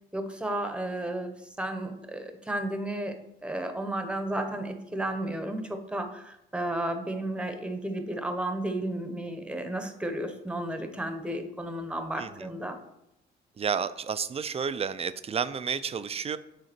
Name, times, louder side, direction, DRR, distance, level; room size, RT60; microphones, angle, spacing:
voice 1, 0.1-3.2 3.4-12.8, right 1 dB, 5° right, 6 dB, 0.9 m, -33 dB
voice 2, 12.2-12.5 13.6-16.4, right 6 dB, 30° right, 14 dB, 0.4 m, -31 dB
7.9 x 3.8 x 4.4 m, 0.85 s
cardioid pair, 90°, 20 cm